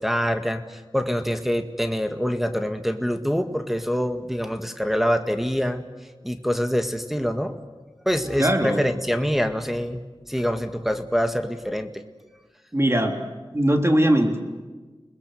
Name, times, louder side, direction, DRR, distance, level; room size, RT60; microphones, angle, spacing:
voice 1, 0.0-5.8 6.2-7.6 8.1-10.0 10.3-11.9, equal, 5° right, 6 dB, 1.9 m, -25 dB
voice 2, 8.4-8.8 12.7-13.1 13.5-14.4, right 1 dB, 25° right, 3 dB, 3.6 m, -20 dB
29.5 x 20.5 x 7.8 m, 1.3 s
wide cardioid pair, 45°, 10 cm